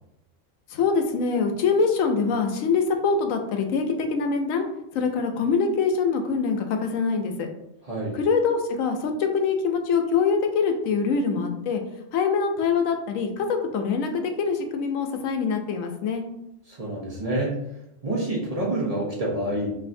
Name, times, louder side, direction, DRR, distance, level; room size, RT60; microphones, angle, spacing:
voice 1, 0.7-4.6 4.9-7.5 8.1-11.8 12.1-16.2, left 5 dB, 90° left, 5 dB, 1.0 m, -24 dB
voice 2, 7.8-8.2 16.7-17.6 18.0-19.7, right 1 dB, 35° right, -5 dB, 0.8 m, -27 dB
5.4 x 2.6 x 2.6 m, 0.85 s
omnidirectional pair, 1.4 m